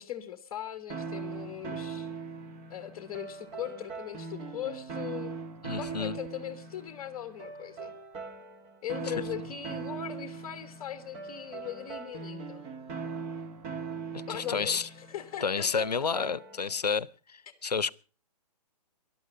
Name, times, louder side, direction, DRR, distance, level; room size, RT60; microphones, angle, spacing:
voice 1, 0.0-2.1 2.7-5.4 5.7-7.9 8.8-12.7 14.3-15.9, left 10 dB, 25° left, 1.3 m, -39 dB
sound 1, 0.9-16.8, right 5 dB, 25° right, 2.0 m, -40 dB
voice 2, 5.6-6.2 14.1-14.8 15.4-17.9, left 5 dB, 80° left, 0.7 m, -30 dB
19.0 x 12.0 x 5.2 m
figure-of-eight pair, 130°, 20 cm